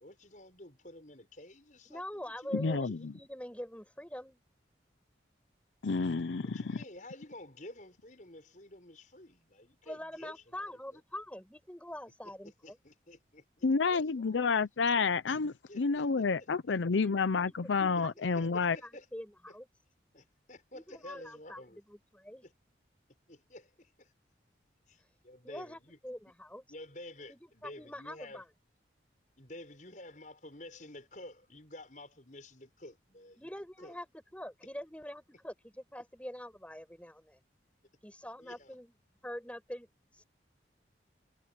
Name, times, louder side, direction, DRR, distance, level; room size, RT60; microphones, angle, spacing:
voice 1, 0.0-3.1 6.4-11.0 12.6-14.6 15.7-16.5 16.9-17.0 18.0-19.1 20.1-21.8 22.4-22.5 23.3-24.1 24.9-26.0 26.7-28.4 29.4-33.5 33.8-34.0 38.4-38.7, left 1 dB, 45° left, 6.8 m, -51 dB
voice 2, 1.9-4.4 9.9-12.8 17.0-17.7 18.0-19.7 20.7-21.6 21.9-22.4 25.4-26.7 27.3-28.4 33.4-34.1 34.3-37.4 38.0-38.9 39.2-39.9, left 1 dB, 5° left, 5.1 m, -45 dB
voice 3, 2.5-3.1 5.8-6.8 13.6-18.8, left 4 dB, 85° left, 0.6 m, -29 dB
head